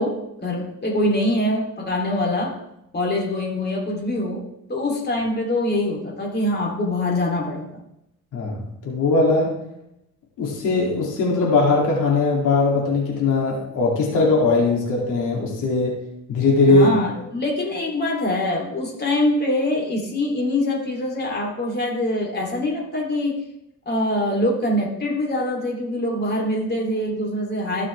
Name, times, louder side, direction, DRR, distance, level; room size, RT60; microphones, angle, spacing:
voice 1, 0.0-2.6 2.9-7.8 16.7-23.4 23.9-27.9, left 1 dB, 35° left, -1 dB, 2.9 m, -24 dB
voice 2, 8.3-9.5 10.4-16.0 16.3-16.9, left 3 dB, 85° left, -2 dB, 2.5 m, -19 dB
15.0 x 6.1 x 3.3 m, 0.82 s
cardioid pair, 90°, 30 cm